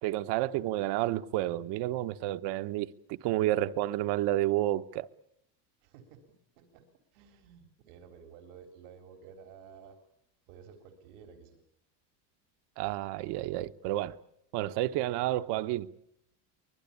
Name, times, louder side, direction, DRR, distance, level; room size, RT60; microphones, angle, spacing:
voice 1, 0.0-5.1 12.8-14.2 14.5-15.9, right 15 dB, 65° right, 1.1 m, -30 dB
voice 2, 5.8-6.9 7.1-10.0 10.5-11.6, right 6 dB, 90° right, 3.7 m, -53 dB
24.5 x 20.5 x 8.6 m
cardioid pair, 135°, 43 cm